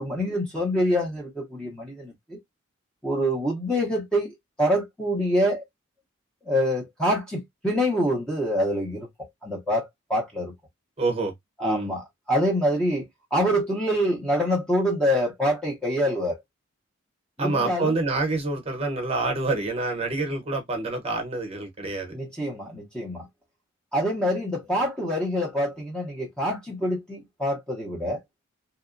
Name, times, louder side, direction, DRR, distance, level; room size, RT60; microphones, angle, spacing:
voice 1, 0.0-2.4 3.0-5.6 6.5-9.1 9.4-10.5 11.6-16.4 17.4-17.9 22.1-23.3 23.9-28.2, equal, 5° left, 0.5 m, -26 dB
voice 2, 11.0-11.3 11.6-11.9 17.4-22.2, right 3 dB, 30° right, 0.8 m, -27 dB
2.8 x 2.1 x 2.4 m
head